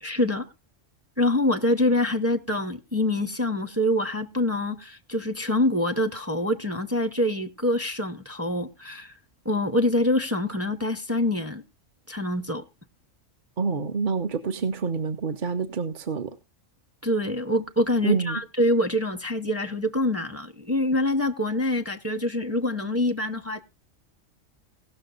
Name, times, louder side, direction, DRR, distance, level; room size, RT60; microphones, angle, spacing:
voice 1, 0.0-0.5 1.2-9.1 9.4-11.6 12.1-12.6 17.0-23.6, left 1 dB, 15° right, 0.6 m, -25 dB
voice 2, 13.6-16.4 18.0-18.4, right 5 dB, 45° right, 0.8 m, -27 dB
17.5 x 6.5 x 3.9 m
omnidirectional pair, 1.3 m